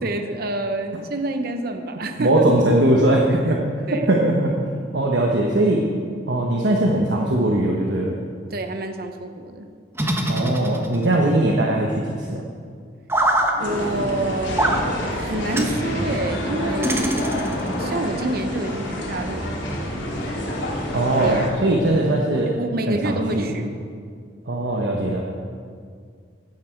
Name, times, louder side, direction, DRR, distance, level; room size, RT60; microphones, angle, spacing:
voice 1, 0.0-2.4 3.3-4.1 8.5-9.7 13.5-20.0 21.2-21.5 22.5-23.8, right 2 dB, 55° right, 6 dB, 0.8 m, -28 dB
voice 2, 2.2-3.6 4.1-4.5 4.9-5.8 6.3-8.1 10.3-12.0 12.3-12.4 20.9-22.5 22.9-23.5 24.5-25.2, right 1 dB, 70° right, -1 dB, 1.2 m, -20 dB
sound 1, 10.0-11.2 13.1-13.5 14.6-14.8 15.5-15.8 16.8-17.7, right 1 dB, 15° right, 1.0 m, -22 dB
sound 2, 13.6-21.5, left 1 dB, 85° left, 2.6 m, -27 dB
14.5 x 10.0 x 4.6 m, 2.1 s
head